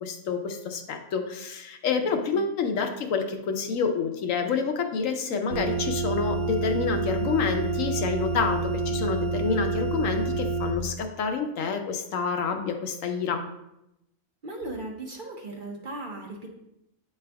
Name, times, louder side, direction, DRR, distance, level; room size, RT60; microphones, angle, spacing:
voice 1, 0.0-13.4, left 5 dB, 75° left, 5 dB, 1.0 m, -28 dB
voice 2, 2.0-2.4 14.4-16.5, right 2 dB, 45° right, 0 dB, 0.8 m, -37 dB
sound 1, 5.5-10.7, right 3 dB, 75° right, 1.2 m, -28 dB
8.4 x 3.4 x 3.4 m, 0.85 s
omnidirectional pair, 1.4 m